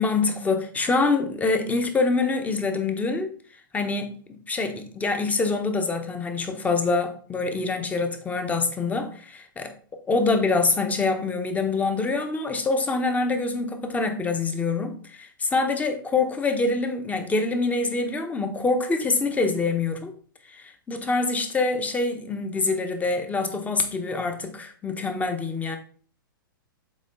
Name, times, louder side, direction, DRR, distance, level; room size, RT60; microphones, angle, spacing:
voice 1, 0.0-3.3 3.7-4.2 4.5-9.7 10.1-20.1 20.5-25.8, left 3 dB, 15° left, 1.1 m, -25 dB
7.3 x 4.5 x 4.0 m
figure-of-eight pair, 110°, 12 cm